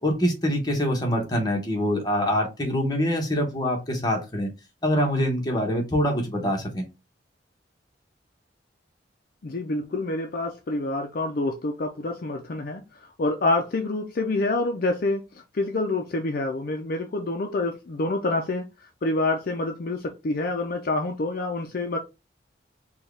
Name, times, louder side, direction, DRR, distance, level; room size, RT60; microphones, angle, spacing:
voice 1, 0.0-4.5 4.8-6.9, equal, 20° left, 1.1 m, -24 dB
voice 2, 9.4-18.7 19.0-22.0, left 2 dB, 50° left, 0.5 m, -27 dB
4.3 x 2.3 x 3.4 m
head